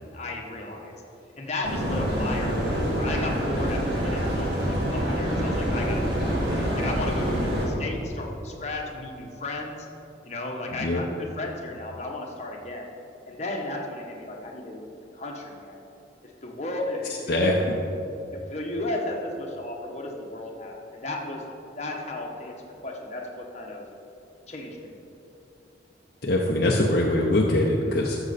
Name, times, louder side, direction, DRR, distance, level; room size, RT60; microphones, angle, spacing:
voice 1, 0.1-0.9 1.4-6.4 6.7-9.9 10.3-12.9 13.3-14.9 15.2-15.8 16.2-17.6 18.3-21.4 21.8-22.6 22.8-23.8 24.5-24.9, left 2 dB, 35° left, 0 dB, 1.2 m, -34 dB
sound 1, 1.6-7.7, equal, 60° right, 2.5 m, -26 dB
voice 2, 26.2-28.2, left 1 dB, 50° left, -2 dB, 0.8 m, -22 dB
12.5 x 7.1 x 4.2 m, 2.9 s
head